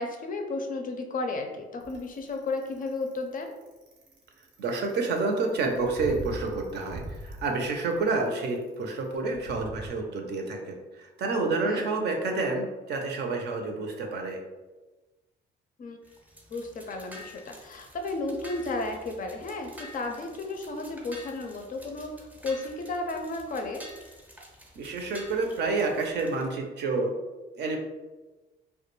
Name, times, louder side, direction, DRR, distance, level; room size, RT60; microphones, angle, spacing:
voice 1, 0.0-3.5 11.6-11.9 15.8-16.0 16.5-23.9, left 2 dB, 45° left, 3 dB, 0.4 m, -33 dB
Bicycle, 1.8-9.9, right 1 dB, 90° right, 0.7 m, -42 dB
voice 2, 4.6-14.4 24.7-27.1 27.6-27.8, right 3 dB, 60° right, 2 dB, 0.5 m, -29 dB
sound 1, 16.0-26.4, equal, 10° right, 0.5 m, -49 dB
2.2 x 2.1 x 3.0 m, 1.2 s
cardioid pair, 90°, 20 cm